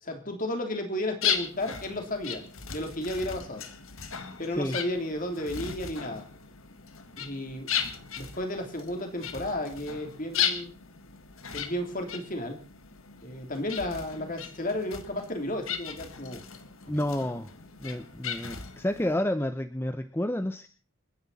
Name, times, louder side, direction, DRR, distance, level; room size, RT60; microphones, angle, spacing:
voice 1, 0.0-2.4 2.7-3.7 4.4-6.3 7.2-7.7 8.2-10.7 11.5-12.6 13.2-16.4 16.9-17.0, left 1 dB, 40° left, 4 dB, 3.3 m, -33 dB
sound 1, 1.2-19.1, left 8 dB, 85° left, 1.8 m, -36 dB
voice 2, 16.9-17.5 17.8-20.7, left 1 dB, 10° left, 9 dB, 0.7 m, -30 dB
28.5 x 10.5 x 4.2 m, 0.36 s
head